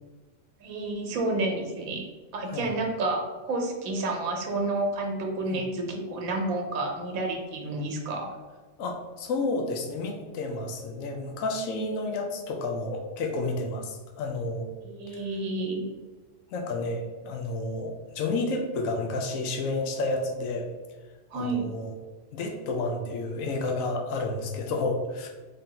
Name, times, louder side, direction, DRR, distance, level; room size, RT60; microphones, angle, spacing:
voice 1, 0.6-2.1 2.3-8.3 14.8-15.9 21.3-21.7, right 2 dB, 85° right, 2 dB, 1.1 m, -30 dB
voice 2, 8.8-14.7 15.1-15.2 16.5-20.7 21.3-21.9 22.3-25.3, left 2 dB, 80° left, 2 dB, 1.0 m, -31 dB
3.5 x 2.7 x 3.7 m, 1.3 s
omnidirectional pair, 1.4 m